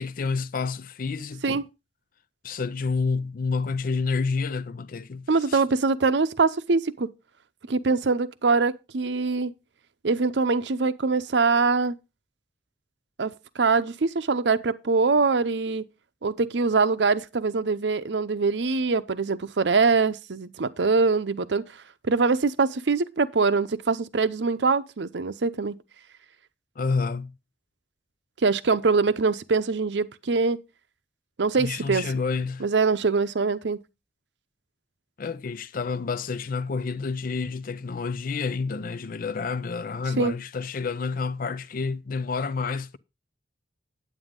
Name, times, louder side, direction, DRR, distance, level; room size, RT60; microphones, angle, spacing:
voice 1, 0.0-1.6 2.4-5.6 26.8-27.3 31.5-32.7 35.2-43.0, left 4 dB, 50° left, 0.5 m, -29 dB
voice 2, 5.3-7.1 7.7-9.5 10.0-12.0 13.2-15.8 16.2-21.7 22.0-25.8 28.4-30.6 31.4-32.0 32.6-33.8 40.2-40.3, right 4 dB, 75° right, 0.7 m, -23 dB
9.1 x 8.8 x 3.7 m
head